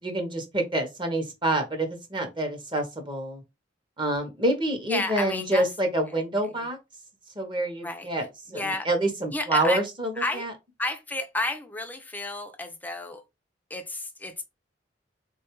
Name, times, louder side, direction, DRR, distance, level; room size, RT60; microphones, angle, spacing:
voice 1, 0.0-3.4 4.0-6.8 7.4-10.5, right 1 dB, 25° right, 0.7 m, -27 dB
voice 2, 4.9-5.6 6.1-6.2 7.8-8.1 8.5-8.9 9.3-9.8 10.2-10.4 10.8-13.2 13.7-14.4, left 2 dB, 10° left, 0.4 m, -31 dB
3.6 x 2.3 x 2.9 m
head